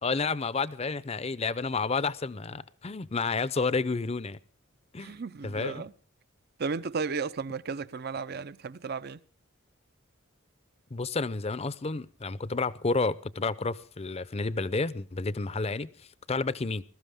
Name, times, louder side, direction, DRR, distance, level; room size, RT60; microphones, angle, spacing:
voice 1, 0.0-4.4 4.9-5.2 5.4-5.8 10.9-16.8, left 4 dB, 30° left, 0.6 m, -30 dB
voice 2, 5.0-5.9 6.6-9.2, right 5 dB, 50° right, 0.6 m, -34 dB
21.0 x 13.5 x 3.6 m
head